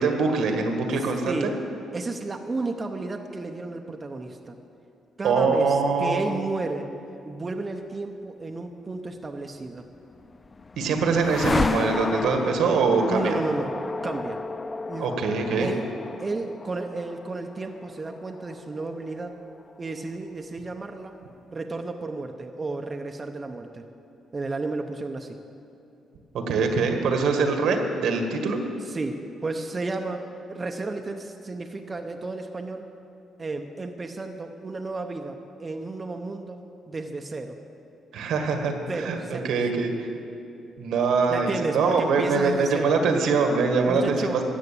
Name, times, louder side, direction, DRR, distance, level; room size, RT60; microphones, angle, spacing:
voice 1, 0.0-1.5 5.2-6.3 10.8-13.3 15.0-15.7 26.3-28.6 38.1-38.7 39.0-39.2 39.4-40.1 40.8-44.4, right 4 dB, 80° right, 4 dB, 1.7 m, -23 dB
voice 2, 1.0-1.5 1.9-4.6 5.2-6.9 7.3-9.9 13.1-13.7 14.0-14.4 14.9-15.1 15.6-15.9 16.2-19.4 19.8-21.2 21.5-23.8 24.3-25.4 28.9-32.9 33.4-37.6 38.9-39.5 41.3-42.9 43.9-44.4, right 3 dB, 30° right, 4 dB, 0.8 m, -32 dB
sound 1, 10.0-20.0, left 3 dB, 25° left, 0.4 m, -32 dB
13.5 x 7.7 x 8.5 m, 2.7 s
cardioid pair, 90°, 0 cm